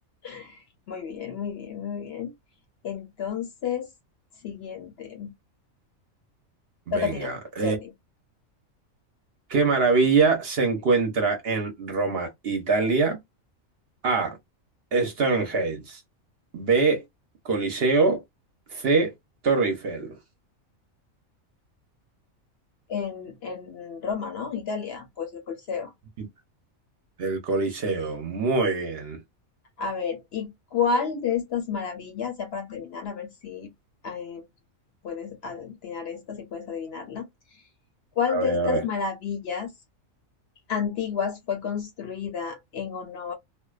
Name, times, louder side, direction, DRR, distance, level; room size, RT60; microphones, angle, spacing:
voice 1, 0.2-2.3 2.8-3.9 4.4-5.3 6.9-7.3 7.6-7.9 22.9-25.9 29.8-33.7 34.0-34.5 35.0-37.6 38.2-39.7 40.7-43.3, left 6 dB, 60° left, 0.7 m, -31 dB
voice 2, 6.9-7.8 9.5-13.2 14.0-14.4 14.9-16.0 16.5-17.0 17.4-18.2 18.7-19.1 19.4-20.2 26.2-26.3 27.2-29.2 38.3-38.8, right 4 dB, 55° right, 0.8 m, -24 dB
2.5 x 2.1 x 2.3 m
omnidirectional pair, 1.4 m